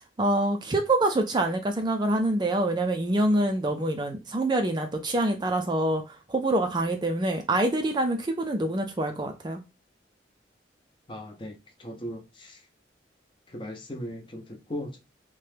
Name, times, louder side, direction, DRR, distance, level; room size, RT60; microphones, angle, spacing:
voice 1, 0.2-9.6, right 1 dB, 25° right, 0.4 m, -26 dB
voice 2, 11.1-12.7 13.5-15.0, equal, 25° left, 0.6 m, -38 dB
2.9 x 2.2 x 3.2 m
head